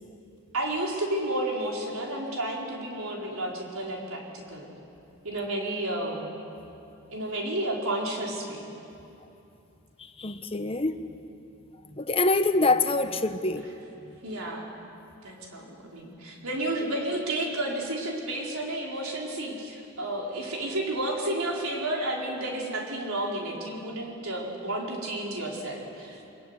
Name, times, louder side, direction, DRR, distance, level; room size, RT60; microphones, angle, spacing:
voice 1, 0.5-4.7 5.2-6.3 7.1-8.7 14.2-14.7 15.2-26.3, right 1 dB, 85° right, -1 dB, 4.7 m, -31 dB
voice 2, 10.2-11.0 12.0-13.6, left 2 dB, 25° left, 8 dB, 1.0 m, -25 dB
23.0 x 22.0 x 9.8 m, 2.8 s
head